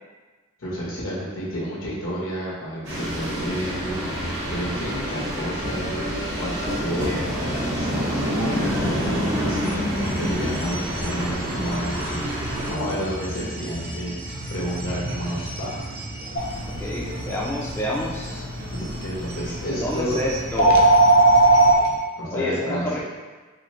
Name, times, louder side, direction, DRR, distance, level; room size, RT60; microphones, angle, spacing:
voice 1, 0.6-7.9 8.3-12.2 12.7-14.1 14.5-15.8 18.7-20.2 22.2-23.0, equal, 85° left, -7 dB, 1.3 m, -31 dB
sound 1, 2.8-12.7, equal, 65° right, 1.2 m, -27 dB
sound 2, 7.2-22.0, right 1 dB, 45° right, 0.5 m, -35 dB
sound 3, 16.4-21.8, right 2 dB, 60° left, 1.0 m, -20 dB
voice 2, 16.8-18.4 19.7-20.8 22.3-23.0, left 1 dB, 10° left, -4 dB, 0.4 m, -28 dB
4.8 x 2.0 x 3.1 m, 1.3 s
head